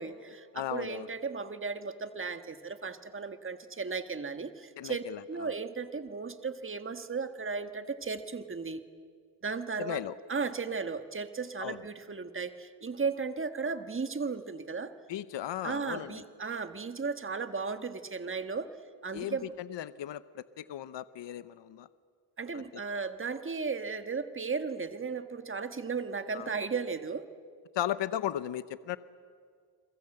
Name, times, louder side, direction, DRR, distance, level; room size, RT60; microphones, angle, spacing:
voice 1, 0.0-8.8 9.4-10.0 10.3-14.9 15.6-18.7 19.0-19.5 22.4-27.3, right 5 dB, 25° right, 9 dB, 1.5 m, -35 dB
voice 2, 0.5-1.1 4.8-5.5 9.8-10.1 11.6-11.8 15.1-16.1 19.1-21.9 22.5-22.6 26.3-26.5 27.7-29.0, left 12 dB, 65° left, 15 dB, 0.8 m, -36 dB
30.0 x 22.0 x 7.8 m, 2.1 s
cardioid pair, 100°, 46 cm